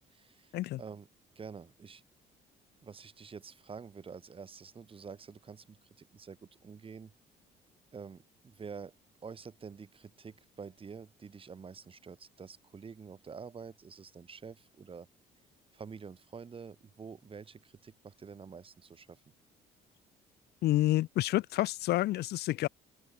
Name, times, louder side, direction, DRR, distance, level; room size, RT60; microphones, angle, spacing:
voice 1, 0.1-0.5 0.8-1.1 1.4-2.0 2.8-7.1 7.9-8.9 9.2-15.1 15.7-19.2, right 5 dB, 30° right, 6.0 m, -48 dB
voice 2, 20.6-22.7, left 16 dB, 75° left, 1.2 m, -29 dB
open air
cardioid pair, 110°, 17 cm